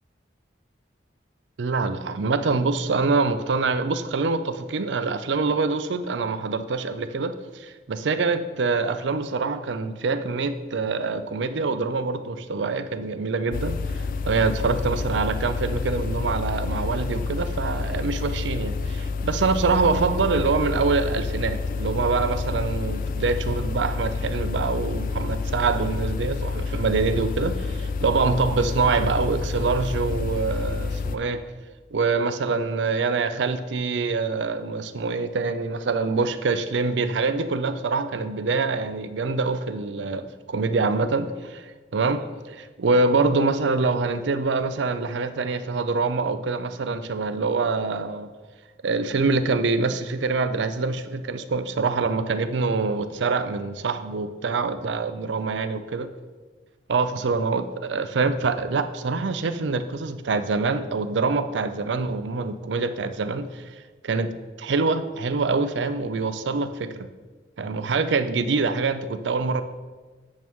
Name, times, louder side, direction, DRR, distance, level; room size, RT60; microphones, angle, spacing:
voice 1, 1.6-31.4 31.9-48.3 48.8-56.1 56.9-63.7 64.0-64.3 64.6-67.1 67.6-69.6, right 4 dB, 75° right, 11 dB, 0.5 m, -25 dB
sound 1, 13.5-31.2, left 4 dB, 45° left, 0.3 m, -29 dB
8.8 x 3.6 x 5.9 m, 1.3 s
head